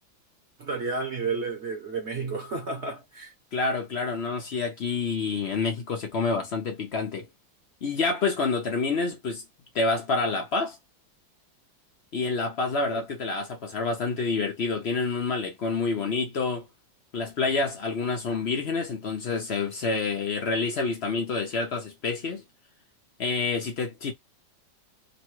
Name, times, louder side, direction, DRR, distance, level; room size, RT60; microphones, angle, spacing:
voice 1, 0.6-3.3, right 4 dB, 50° right, 0.9 m, -31 dB
voice 2, 3.5-7.3 7.8-9.4 9.7-10.8 12.1-16.7 17.1-22.4 23.2-24.1, left 4 dB, 65° left, 0.6 m, -28 dB
3.1 x 2.2 x 3.0 m
omnidirectional pair, 2.0 m